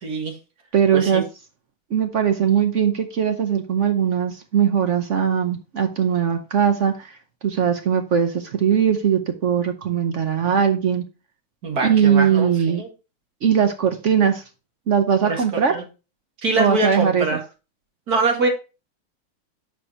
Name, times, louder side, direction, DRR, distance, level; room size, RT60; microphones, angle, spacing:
voice 1, 0.0-0.4 0.9-1.2 11.6-12.5 12.8-12.9 15.2-15.4 15.7-15.8 16.4-17.4 18.1-18.5, right 3 dB, 45° right, 3 dB, 2.3 m, -23 dB
voice 2, 0.7-1.2 1.9-7.2 7.4-11.0 11.8-12.8 13.4-14.4 14.9-15.7 16.6-17.3, right 8 dB, 75° right, 7 dB, 0.6 m, -20 dB
10.5 x 5.6 x 2.8 m, 0.30 s
omnidirectional pair, 2.3 m